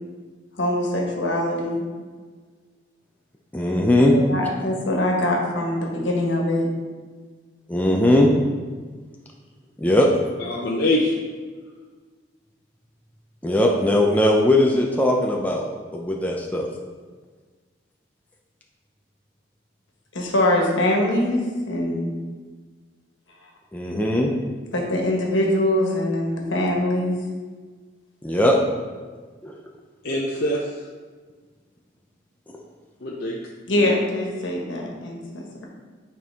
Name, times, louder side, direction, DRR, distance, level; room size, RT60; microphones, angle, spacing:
voice 1, 0.6-1.8 4.1-6.7 20.1-22.2 24.7-27.1 33.7-35.6, left 1 dB, 75° left, -1 dB, 1.5 m, -23 dB
voice 2, 3.5-4.1 7.7-8.3 9.8-10.1 13.4-15.7 15.9-16.7 23.7-24.3 28.2-28.5 29.4-29.6, left 1 dB, 10° left, -1 dB, 0.5 m, -19 dB
voice 3, 10.4-11.1 30.0-30.7 33.0-33.4 33.7-33.9, left 1 dB, 55° left, -4 dB, 0.7 m, -24 dB
9.0 x 4.5 x 3.5 m, 1.4 s
head